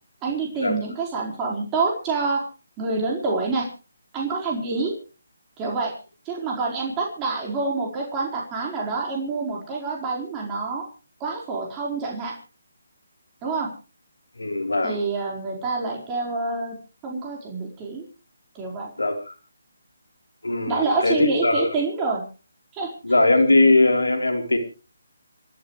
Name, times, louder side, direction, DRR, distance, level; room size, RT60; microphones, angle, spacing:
voice 1, 0.2-2.4 2.8-3.7 4.1-4.9 5.6-5.9 6.2-10.8 11.2-12.3 13.4-13.7 14.8-16.7 17.0-18.0 18.5-18.9 20.7-22.2 22.7-22.9, right 3 dB, 20° right, -2 dB, 4.5 m, -27 dB
voice 2, 14.4-15.0 19.0-19.3 20.4-21.7 23.0-24.6, left 2 dB, 85° left, 6 dB, 3.9 m, -20 dB
29.0 x 12.0 x 3.2 m, 0.34 s
figure-of-eight pair, 150°, 0 cm